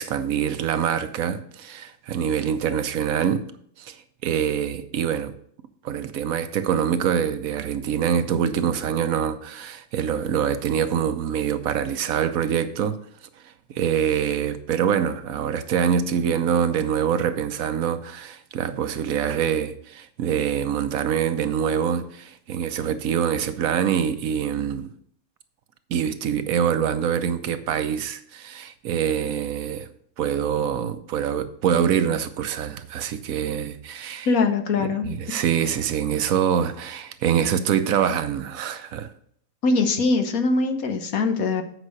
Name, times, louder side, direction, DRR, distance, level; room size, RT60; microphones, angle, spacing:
voice 1, 0.0-3.5 3.8-5.3 5.8-13.0 13.4-24.9 25.9-29.9 30.2-34.3 34.8-39.1, right 8 dB, 70° right, 1.1 m, -25 dB
voice 2, 34.3-35.1 39.6-41.6, left 3 dB, 75° left, 1.4 m, -22 dB
8.1 x 5.3 x 6.4 m
omnidirectional pair, 1.5 m